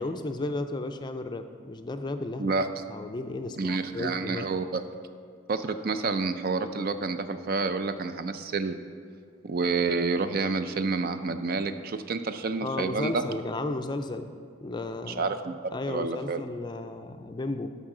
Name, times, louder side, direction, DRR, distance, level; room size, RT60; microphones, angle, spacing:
voice 1, 0.0-2.5 2.9-4.5 12.6-14.3 14.6-15.3 15.7-17.7, left 2 dB, 25° left, 7 dB, 0.4 m, -34 dB
voice 2, 3.6-4.8 5.5-8.8 9.4-13.2 15.1-15.5 15.9-16.4, right 4 dB, 50° right, 10 dB, 0.4 m, -29 dB
13.5 x 5.5 x 3.8 m, 2.2 s
head